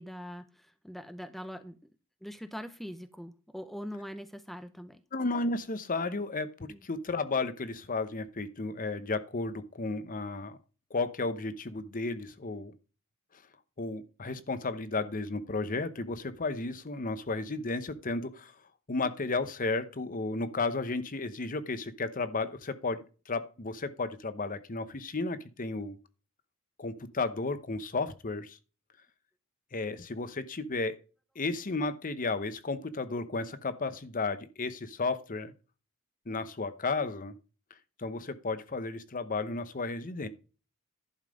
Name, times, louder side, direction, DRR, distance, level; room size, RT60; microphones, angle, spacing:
voice 1, 0.0-1.8 2.2-5.0 6.7-6.8, equal, ahead, 0.6 m, -42 dB
voice 2, 5.1-10.6 10.9-12.7 13.8-18.5 18.9-26.0 26.8-28.6 29.7-31.0 31.4-35.5 36.3-37.3 38.0-40.3, left 3 dB, 40° left, 0.8 m, -33 dB
11.0 x 5.6 x 5.1 m
head